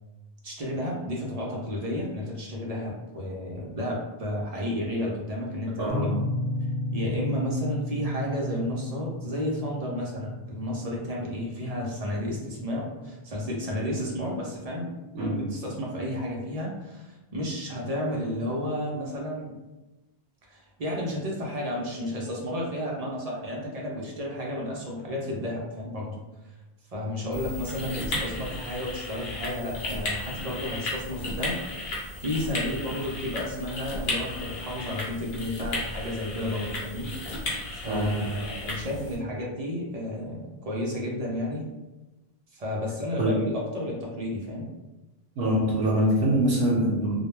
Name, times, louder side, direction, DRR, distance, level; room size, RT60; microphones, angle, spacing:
voice 1, 0.4-6.1 6.9-14.9 15.2-19.5 20.5-26.2 26.4-26.5 26.9-41.7 42.5-44.7, left 1 dB, 50° right, -2 dB, 0.5 m, -32 dB
voice 2, 5.8-6.2 15.1-15.4 37.9-38.2 43.2-43.4 45.4-47.2, right 1 dB, 80° right, -5 dB, 0.9 m, -24 dB
sound 1, 5.9-14.6, left 1 dB, 35° left, 0.7 m, -34 dB
sound 2, 27.3-39.2, left 2 dB, 75° left, 0.9 m, -34 dB
2.2 x 2.2 x 3.0 m, 1.1 s
omnidirectional pair, 1.0 m